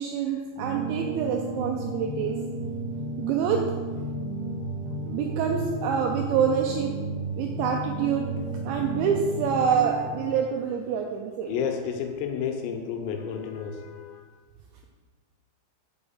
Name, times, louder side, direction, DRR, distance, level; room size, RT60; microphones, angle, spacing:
voice 1, 0.0-2.4 3.2-3.6 5.1-6.9 7.3-8.2 8.6-11.6, right 7 dB, 90° right, 2 dB, 2.5 m, -26 dB
sound 1, 0.6-10.4, right 2 dB, 75° right, 3.4 m, -33 dB
voice 2, 11.5-14.3, left 7 dB, 85° left, 4 dB, 3.7 m, -31 dB
6.5 x 6.0 x 7.1 m, 1.4 s
omnidirectional pair, 5.9 m